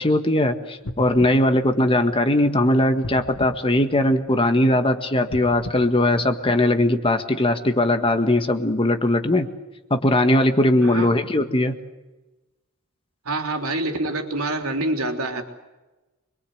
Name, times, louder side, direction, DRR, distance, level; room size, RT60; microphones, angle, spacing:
voice 1, 0.0-9.5 9.9-11.7, left 1 dB, 25° left, 7 dB, 1.8 m, -20 dB
sound 1, 0.8-2.5 3.0-4.6 5.2-6.9 7.5-7.6, left 1 dB, 90° left, 2.6 m, -38 dB
voice 2, 13.3-15.4, right 2 dB, 80° right, 4 dB, 3.6 m, -26 dB
26.0 x 23.0 x 8.1 m, 1.1 s
head